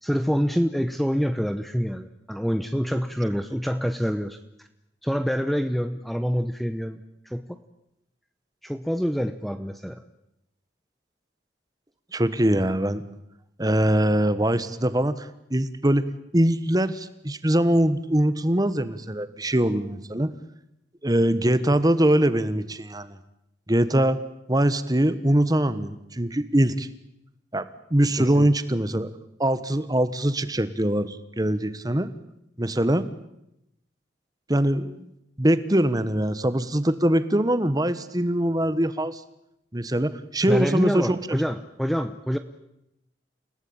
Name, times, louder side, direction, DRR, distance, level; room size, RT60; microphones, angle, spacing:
voice 1, 0.0-4.4 5.0-7.0 7.3-7.4 8.6-10.0 28.2-28.5 40.4-42.4, equal, ahead, 9 dB, 0.9 m, -26 dB
voice 2, 12.1-13.0 13.6-20.3 21.0-23.2 23.7-24.2 24.5-26.9 27.5-29.1 29.4-32.1 32.6-33.1 34.5-35.1 35.4-39.2 39.7-41.4, right 1 dB, 20° right, 14 dB, 1.3 m, -23 dB
29.0 x 17.5 x 8.8 m, 0.85 s
head